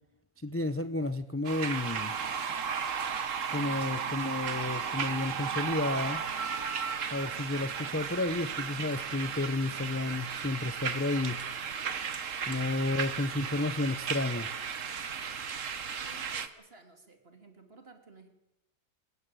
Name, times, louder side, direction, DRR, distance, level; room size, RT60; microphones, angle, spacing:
voice 1, 0.4-2.1 3.5-6.2 7.1-11.4 12.5-14.5, left 2 dB, 15° left, 11 dB, 0.5 m, -31 dB
sound 1, 1.4-16.5, right 6 dB, 65° right, 1.5 m, -35 dB
voice 2, 16.0-18.3, right 4 dB, 45° right, 5 dB, 3.0 m, -55 dB
24.5 x 14.5 x 9.2 m, 0.89 s
omnidirectional pair, 1.5 m